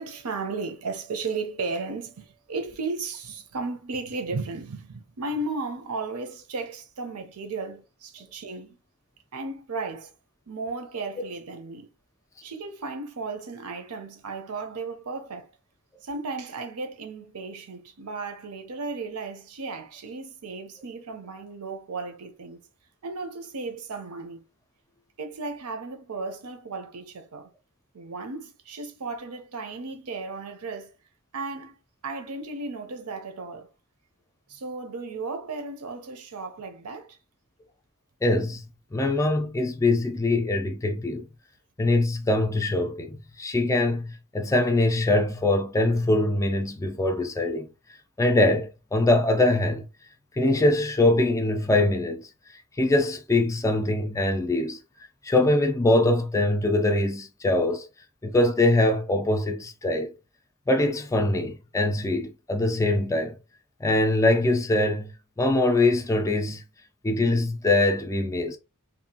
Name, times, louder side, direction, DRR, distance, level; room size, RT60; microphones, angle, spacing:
voice 1, 0.0-8.8 9.3-10.1 10.5-11.9 12.4-15.5 16.0-22.6 23.0-24.4 25.2-27.5 27.9-30.9 31.3-31.7 32.0-33.7 34.5-37.2, right 3 dB, 75° right, 0.6 m, -35 dB
voice 2, 38.2-38.6 38.9-41.3 41.8-47.7 48.2-49.8 50.4-52.3 52.8-54.8 55.2-57.9 58.2-60.1 60.7-63.3 63.8-65.1 65.4-66.6 67.0-68.6, left 2 dB, 15° left, 0.3 m, -23 dB
2.7 x 2.4 x 2.7 m
head